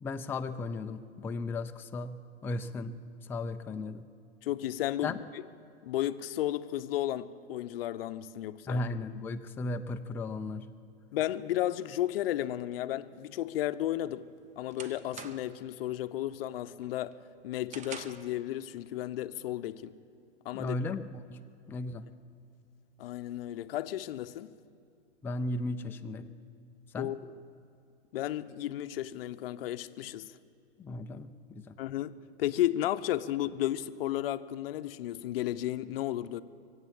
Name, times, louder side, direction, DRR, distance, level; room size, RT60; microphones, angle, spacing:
voice 1, 0.0-3.0 3.3-4.1 5.0-5.2 8.7-10.7 20.5-21.4 21.7-22.1 25.2-26.3 26.9-27.1 30.8-31.7, left 2 dB, 5° left, 0.3 m, -36 dB
voice 2, 4.4-5.4 5.8-8.8 11.1-14.3 14.6-19.9 20.4-20.7 23.0-24.5 27.0-27.3 28.1-30.3 31.8-36.4, left 13 dB, 70° left, 0.7 m, -33 dB
sound 1, 13.9-15.7 16.1-16.4 16.8-18.4, right 5 dB, 25° right, 0.8 m, -47 dB
23.5 x 8.2 x 7.5 m
hypercardioid pair, 115°, 31 cm